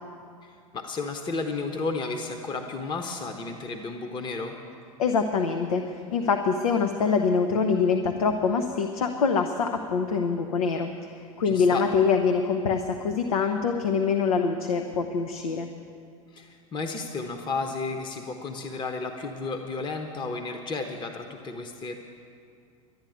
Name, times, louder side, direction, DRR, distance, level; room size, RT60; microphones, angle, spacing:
voice 1, 0.4-4.6 11.4-11.8 16.3-22.0, left 3 dB, 25° left, 6 dB, 1.1 m, -33 dB
voice 2, 5.0-15.7, left 5 dB, 80° left, 6 dB, 0.9 m, -25 dB
12.0 x 9.4 x 9.3 m, 2.4 s
hypercardioid pair, 100°, 18 cm